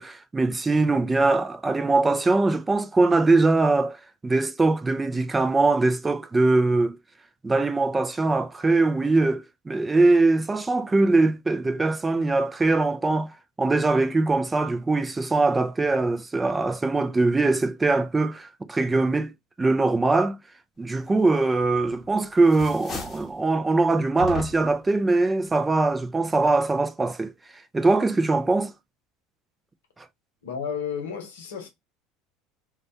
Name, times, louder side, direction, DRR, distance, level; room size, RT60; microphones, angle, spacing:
voice 1, 0.0-4.0 4.2-7.0 7.4-13.3 13.6-19.3 19.6-20.4 20.8-27.3 27.7-28.7, right 3 dB, 15° right, 0.4 m, -22 dB
sound 1, 21.6-22.1 22.4-23.3 24.2-24.8, left 6 dB, 35° left, 0.9 m, -36 dB
voice 2, 30.4-31.7, left 7 dB, 85° left, 0.7 m, -32 dB
2.3 x 2.2 x 2.7 m
hypercardioid pair, 80°, 0 cm